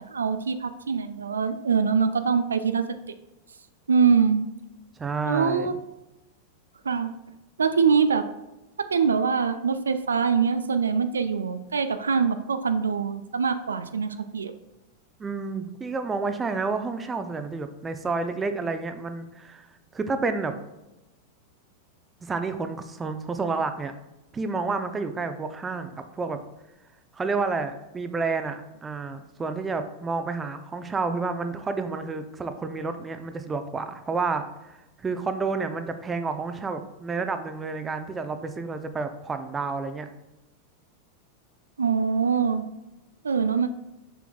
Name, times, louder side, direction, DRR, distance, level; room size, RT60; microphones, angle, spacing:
voice 1, 0.1-3.1 3.9-4.4 5.2-5.7 6.8-7.1 7.6-8.2 8.8-14.5 41.8-42.6 43.2-43.7, right 6 dB, 70° right, 10 dB, 0.3 m, -24 dB
voice 2, 5.0-5.7 15.2-19.7 19.9-20.5 22.2-23.9 24.3-26.4 27.1-40.1, right 4 dB, 15° right, 9 dB, 0.5 m, -30 dB
6.9 x 5.9 x 2.3 m, 0.98 s
figure-of-eight pair, 90°, 0 cm